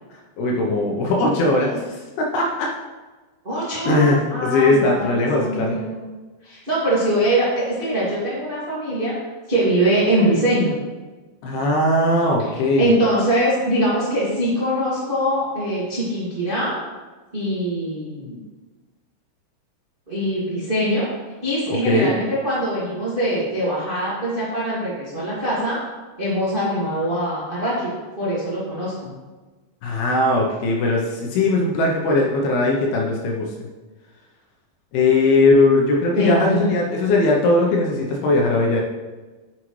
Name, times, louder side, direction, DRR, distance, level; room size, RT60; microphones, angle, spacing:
voice 1, 0.4-2.7 3.9-5.8 11.4-12.9 21.9-22.1 29.8-33.5 34.9-38.8, left 2 dB, 75° left, -1 dB, 2.5 m, -19 dB
voice 2, 3.4-6.0 6.4-9.1 9.5-10.7 12.8-16.7 17.3-18.4 20.1-21.0 21.4-25.8 26.2-29.1 36.1-36.7, right 1 dB, 90° right, -9 dB, 0.4 m, -22 dB
9.6 x 6.4 x 3.2 m, 1.3 s
omnidirectional pair, 5.3 m